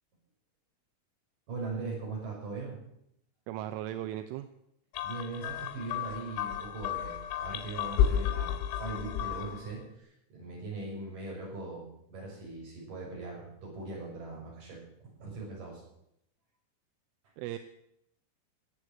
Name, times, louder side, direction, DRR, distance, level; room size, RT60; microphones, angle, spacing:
voice 1, 1.5-2.8 5.0-15.8, right 3 dB, 40° right, -2 dB, 7.7 m, -40 dB
voice 2, 3.5-4.5 17.4-17.6, right 13 dB, 85° right, 9 dB, 3.3 m, -37 dB
sound 1, 4.9-9.7, left 9 dB, 85° left, 3.5 m, -32 dB
19.0 x 8.2 x 9.1 m, 0.77 s
omnidirectional pair, 5.7 m